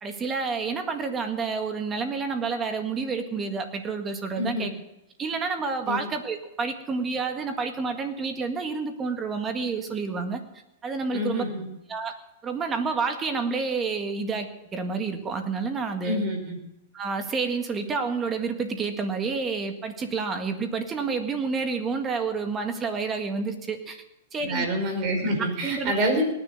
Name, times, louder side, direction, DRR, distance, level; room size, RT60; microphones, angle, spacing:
voice 1, 0.0-4.7 5.2-10.4 10.8-11.4 11.9-12.1 12.4-16.2 16.9-24.0 24.3-24.7 25.6-26.0, right 4 dB, 20° right, 6 dB, 1.8 m, -29 dB
voice 2, 4.4-4.7 5.9-6.0 11.1-11.7 16.0-16.6 24.4-26.2, equal, 40° right, 4 dB, 4.7 m, -27 dB
18.5 x 10.5 x 6.7 m, 0.87 s
hypercardioid pair, 140°, 0 cm